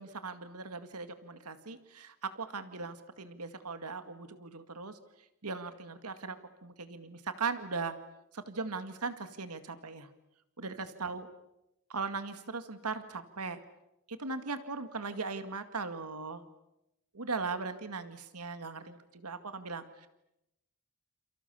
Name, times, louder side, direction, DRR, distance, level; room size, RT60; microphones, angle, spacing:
voice 1, 0.0-5.0 5.4-6.4 6.6-7.9 8.3-10.1 10.6-11.3 11.9-13.6 14.1-16.4 17.1-20.1, right 4 dB, 90° right, 9 dB, 2.1 m, -39 dB
29.5 x 28.5 x 7.0 m, 0.88 s
head